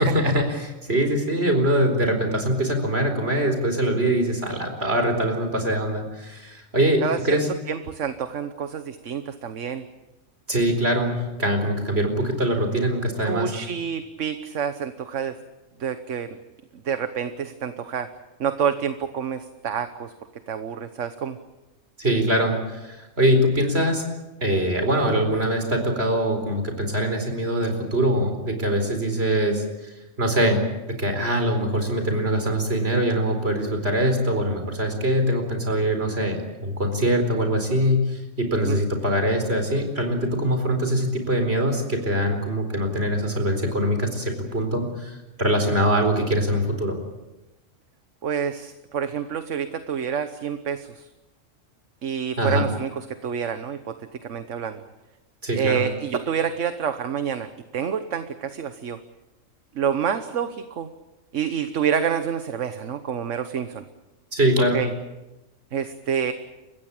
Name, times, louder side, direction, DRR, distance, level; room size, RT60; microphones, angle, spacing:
voice 1, 0.0-7.5 10.5-13.5 22.0-24.0 24.4-30.6 31.0-47.0 52.4-52.6 55.4-55.8 64.3-64.8, right 1 dB, 50° right, 5 dB, 4.6 m, -23 dB
voice 2, 7.0-7.4 7.7-9.8 13.2-15.4 15.8-16.4 16.8-18.1 18.4-20.1 20.5-21.4 38.6-38.8 48.2-51.1 52.0-54.8 55.5-59.0 59.7-60.9 61.3-63.8 64.7-64.9 65.7-66.3, right 7 dB, 70° right, 10 dB, 1.4 m, -28 dB
30.0 x 15.5 x 8.7 m, 1.0 s
omnidirectional pair, 1.3 m